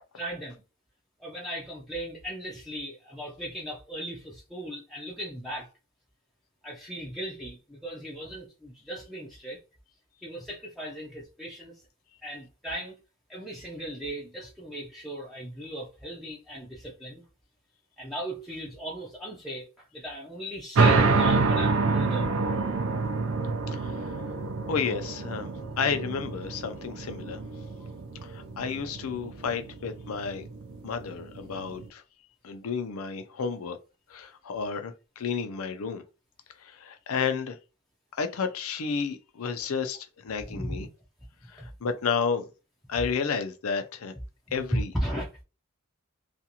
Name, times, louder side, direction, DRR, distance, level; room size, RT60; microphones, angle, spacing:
voice 1, 0.1-0.6 1.2-5.7 6.6-9.6 10.2-11.8 12.2-13.0 13.3-17.2 18.0-22.3 40.5-40.9 41.6-41.7 44.7-45.4, equal, ahead, 0.4 m, -37 dB
sound 1, 20.7-31.9, right 4 dB, 70° right, 0.5 m, -27 dB
voice 2, 23.7-24.1 24.7-27.4 28.2-30.5 30.8-32.0 32.4-33.8 34.1-36.0 36.6-37.6 38.2-40.9 41.5-42.5 42.9-44.1 44.5-44.9, left 5 dB, 85° left, 0.5 m, -31 dB
2.5 x 2.3 x 2.8 m
head